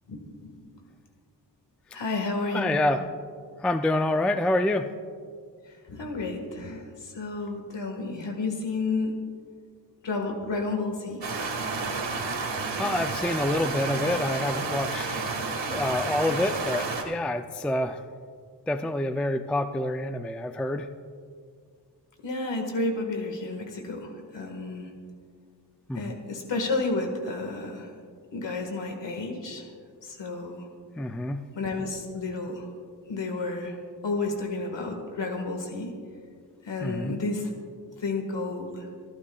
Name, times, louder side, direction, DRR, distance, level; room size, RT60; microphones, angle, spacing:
voice 1, 0.1-0.8 1.9-2.8 5.9-9.2 10.0-11.2 22.2-24.9 25.9-27.9 28.3-29.7 30.0-30.7 31.6-32.7 33.1-33.8 34.0-35.9 36.6-37.5 38.0-38.9, left 3 dB, 80° left, 3 dB, 1.7 m, -31 dB
voice 2, 2.5-3.1 3.6-4.9 12.8-15.2 15.7-18.0 18.7-20.9 25.9-26.2 31.0-31.5 36.8-37.2, left 1 dB, 5° left, 8 dB, 0.3 m, -27 dB
sound 1, 11.2-17.0, right 3 dB, 85° right, 1.8 m, -31 dB
29.0 x 11.5 x 2.3 m, 2.2 s
wide cardioid pair, 115°, 43 cm